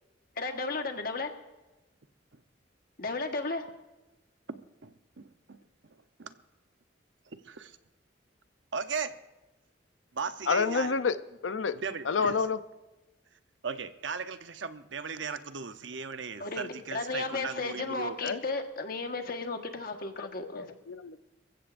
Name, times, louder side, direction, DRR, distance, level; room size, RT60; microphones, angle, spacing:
voice 1, 0.4-1.3 3.0-3.7 16.4-20.7, left 3 dB, 50° left, 5 dB, 1.4 m, -34 dB
voice 2, 4.5-5.6 6.2-6.3 7.3-7.8 8.7-9.1 10.1-11.0 11.8-12.3 13.6-18.2, right 5 dB, 80° right, 10 dB, 0.8 m, -37 dB
voice 3, 10.5-11.2 11.4-11.7 12.0-12.6 18.2-18.4 20.2-21.2, left 5 dB, 85° left, 12 dB, 0.6 m, -29 dB
27.0 x 15.5 x 2.6 m, 1.1 s
head